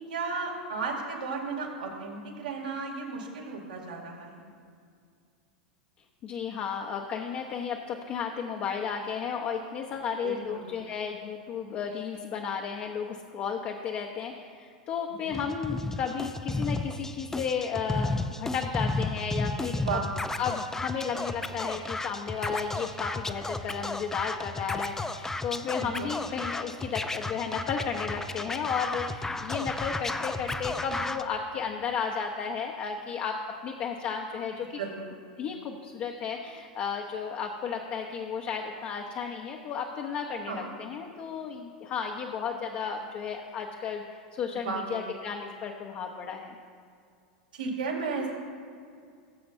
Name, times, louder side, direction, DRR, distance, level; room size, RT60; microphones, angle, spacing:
voice 1, 0.1-4.5 10.2-10.7 15.2-15.4 19.8-20.0 25.8-26.2 34.8-35.1 40.5-40.7 44.5-45.1 47.5-48.3, right 4 dB, 80° right, -1 dB, 2.5 m, -34 dB
voice 2, 6.2-20.0 20.4-34.8 35.4-46.6, left 6 dB, 40° left, 2 dB, 0.9 m, -33 dB
Scratching (performance technique), 15.3-31.2, left 2 dB, 10° left, 0.5 m, -33 dB
19.0 x 7.8 x 2.7 m, 2.2 s
figure-of-eight pair, 90°, 5 cm